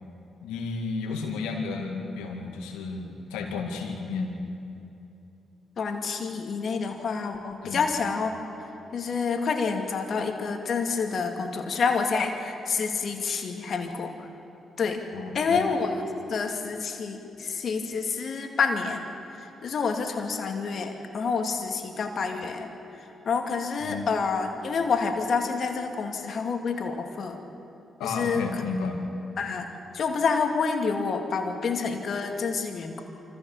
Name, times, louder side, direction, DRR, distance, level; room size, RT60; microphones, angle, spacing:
voice 1, 0.4-4.4 7.6-7.9 15.1-15.7 23.8-24.1 28.0-29.0, left 4 dB, 85° left, 3 dB, 2.2 m, -32 dB
voice 2, 5.8-8.3 8.9-14.3 14.8-15.0 15.3-19.1 19.4-22.7 23.3-27.4 28.0-28.6 29.4-29.7 29.9-33.0, left 5 dB, 60° left, 4 dB, 2.3 m, -28 dB
25.0 x 15.0 x 7.2 m, 2.9 s
hypercardioid pair, 45°, 0 cm